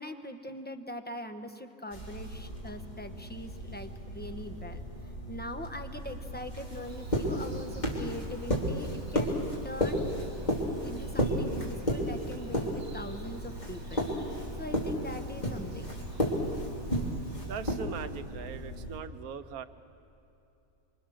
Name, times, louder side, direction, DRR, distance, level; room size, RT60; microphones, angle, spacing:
voice 1, 0.0-4.8 5.3-9.4 9.6-10.1 10.8-15.9, left 1 dB, 10° left, 7 dB, 0.9 m, -42 dB
sound 1, 1.9-19.0, equal, 30° left, 3.3 m, -34 dB
Bird vocalization bird call bird song, 6.7-17.7, right 2 dB, 25° right, 2.6 m, -50 dB
voice 2, 17.4-19.7, right 7 dB, 75° right, 11 dB, 1.3 m, -40 dB
26.5 x 25.5 x 6.4 m, 2.8 s
omnidirectional pair, 1.6 m